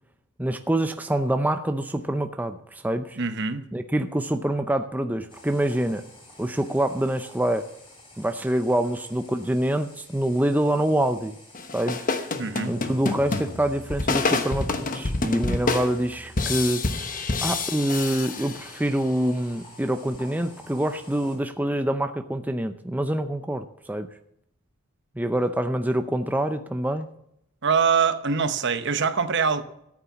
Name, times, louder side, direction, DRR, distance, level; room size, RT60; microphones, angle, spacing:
voice 1, 0.4-3.2 3.7-6.1 6.4-7.7 8.2-11.4 11.7-12.1 12.7-16.9 17.4-24.1 25.2-27.1, right 1 dB, 10° right, 0.5 m, -26 dB
voice 2, 3.2-3.7 12.4-12.7 27.6-29.6, right 5 dB, 55° right, 1.0 m, -23 dB
sound 1, 5.3-21.4, left 1 dB, 25° left, 4.8 m, -50 dB
sound 2, 11.5-19.0, left 3 dB, 40° left, 1.1 m, -28 dB
13.5 x 8.8 x 7.1 m
head